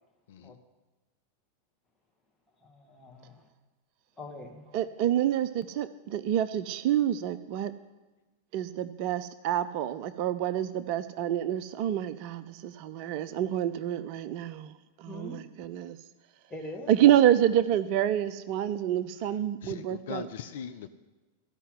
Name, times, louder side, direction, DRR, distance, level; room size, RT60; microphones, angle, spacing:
voice 1, 2.6-3.5 4.2-4.7 15.1-15.4 16.5-16.9, left 1 dB, 10° left, 1 dB, 2.1 m, -43 dB
voice 2, 4.7-7.7 8.5-14.7 15.0-16.0 16.9-20.3, right 11 dB, 45° right, 14 dB, 0.5 m, -27 dB
voice 3, 19.6-20.9, left 8 dB, 55° left, 10 dB, 0.5 m, -40 dB
13.5 x 5.6 x 9.4 m, 1.2 s
figure-of-eight pair, 90°, 0 cm